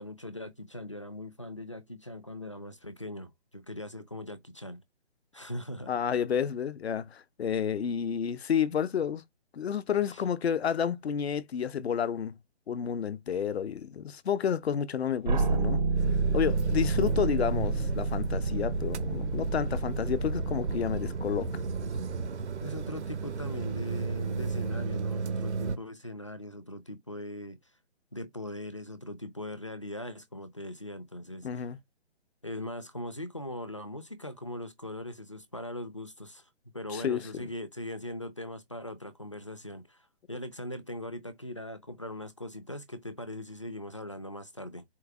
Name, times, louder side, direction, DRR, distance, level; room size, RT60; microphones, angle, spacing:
voice 1, 0.0-4.8 5.3-5.9 10.1-10.2 22.6-27.6 28.1-31.5 32.4-36.5 36.7-44.8, left 1 dB, 30° left, 0.4 m, -40 dB
voice 2, 5.9-9.2 9.5-12.4 12.7-15.8 16.3-21.6 31.4-31.8 36.9-37.4, left 8 dB, 70° left, 0.6 m, -30 dB
sound 1, 15.3-22.2, right 3 dB, 40° right, 0.5 m, -30 dB
sound 2, 15.9-25.8, right 4 dB, 90° right, 0.8 m, -34 dB
4.5 x 2.0 x 4.6 m
hypercardioid pair, 160°, 33 cm